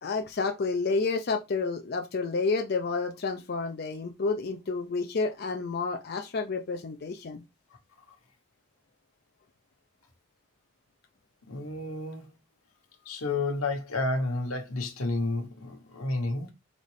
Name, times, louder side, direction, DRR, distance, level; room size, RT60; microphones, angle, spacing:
voice 1, 0.0-7.4, left 4 dB, 45° left, 0.4 m, -30 dB
voice 2, 11.5-12.3 13.1-16.5, left 2 dB, 90° left, 1.1 m, -31 dB
4.0 x 3.1 x 3.3 m
head